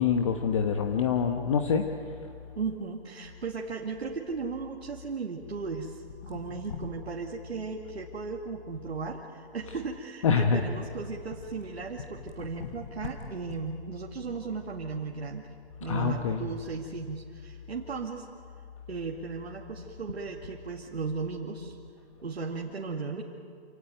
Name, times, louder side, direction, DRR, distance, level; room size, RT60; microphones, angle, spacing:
voice 1, 0.0-1.8 10.2-10.6 12.6-12.7 15.8-16.4, left 6 dB, 30° left, 5 dB, 1.1 m, -25 dB
voice 2, 2.6-15.5 15.8-18.3 18.9-21.8 22.2-23.2, right 4 dB, 75° right, 0 dB, 2.4 m, -36 dB
27.5 x 17.5 x 9.2 m, 2.3 s
hypercardioid pair, 165°, 32 cm